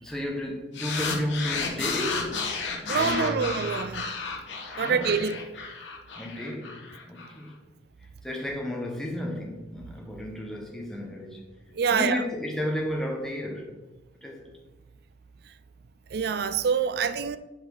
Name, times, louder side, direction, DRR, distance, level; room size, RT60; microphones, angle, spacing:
voice 1, 0.0-2.3 2.8-3.6 4.8-5.1 6.2-6.8 7.1-7.6 8.2-11.4 11.9-13.7 14.2-14.5, left 1 dB, 5° left, 1.1 m, -32 dB
sound 1, 0.7-7.3, left 4 dB, 85° left, 1.2 m, -32 dB
voice 2, 2.9-4.1 4.8-5.4 11.7-12.2 16.1-17.4, right 6 dB, 60° right, 0.4 m, -26 dB
7.3 x 4.6 x 3.9 m
head